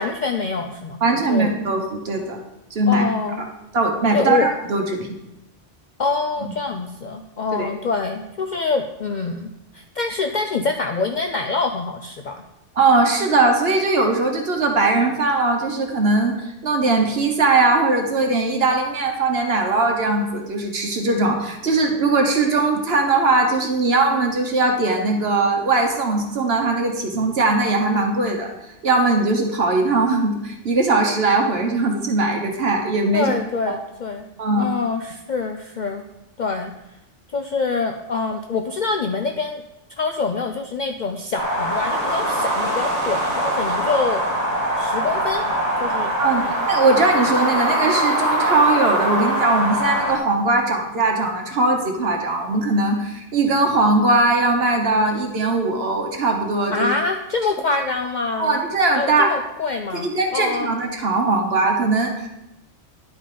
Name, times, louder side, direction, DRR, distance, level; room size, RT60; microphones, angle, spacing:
voice 1, 0.0-1.0 1.3-1.5 2.9-3.4 4.1-4.5 6.0-12.4 33.1-34.2 34.6-36.0 36.4-36.7 37.3-39.6 40.0-44.2 44.8-45.5 45.8-46.1 56.7-58.6 58.9-60.8, left 4 dB, 60° left, 5 dB, 0.5 m, -25 dB
voice 2, 1.0-2.4 2.7-3.0 3.7-5.1 7.5-7.7 12.8-28.5 28.8-33.3 33.7-33.8 34.4-34.7 46.2-56.9 58.4-59.3 59.9-62.3, right 3 dB, 55° right, 3 dB, 1.3 m, -20 dB
sound 1, 41.4-50.2, right 1 dB, 30° right, 1.4 m, -22 dB
10.5 x 4.9 x 3.8 m, 0.91 s
omnidirectional pair, 1.3 m